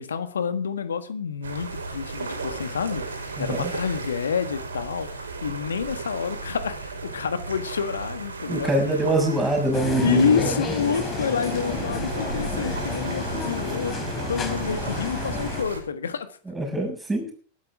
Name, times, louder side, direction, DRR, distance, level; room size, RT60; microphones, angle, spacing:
voice 1, 0.0-9.1 10.0-16.4, left 6 dB, 70° left, 12 dB, 1.6 m, -28 dB
sound 1, 1.4-15.8, right 3 dB, 65° right, 5.2 m, -34 dB
voice 2, 3.4-3.7 8.5-10.7 16.4-17.3, right 1 dB, 10° right, 1 dB, 6.7 m, -24 dB
sound 2, 9.7-15.6, left 4 dB, 25° left, 3.8 m, -31 dB
22.0 x 12.0 x 3.6 m, 0.42 s
figure-of-eight pair, 90°, 0 cm